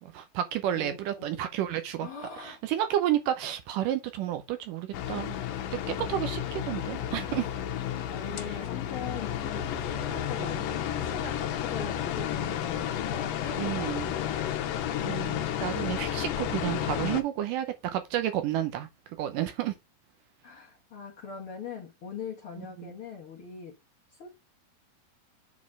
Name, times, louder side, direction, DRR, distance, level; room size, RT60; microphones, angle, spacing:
voice 1, 0.0-2.1 2.4-5.4 5.9-7.5 8.4-8.6 10.1-10.6 13.6-14.1 15.0-18.9 19.2-19.8 22.8-22.9, right 12 dB, 75° right, 2.2 m, -31 dB
voice 2, 0.7-1.4 2.0-2.6 8.1-14.3 20.4-23.8 24.2-24.3, left 6 dB, 55° left, 1.6 m, -41 dB
sound 1, 4.9-17.2, left 10 dB, 75° left, 2.4 m, -32 dB
7.3 x 4.1 x 4.9 m
omnidirectional pair, 4.2 m